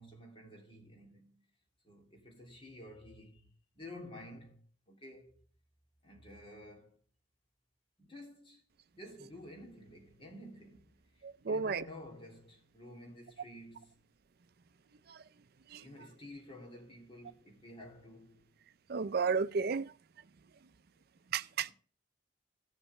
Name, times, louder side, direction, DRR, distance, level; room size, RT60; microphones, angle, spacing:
voice 1, 0.0-1.5 1.8-5.5 6.0-7.0 8.0-8.6 8.9-14.0 15.8-18.4 21.6-21.7, left 1 dB, 30° left, 2.8 m, -52 dB
voice 2, 11.2-11.8 15.1-15.2 15.7-15.8 18.9-19.9 21.3-21.7, right 5 dB, 55° right, 0.5 m, -32 dB
17.0 x 7.3 x 3.2 m
head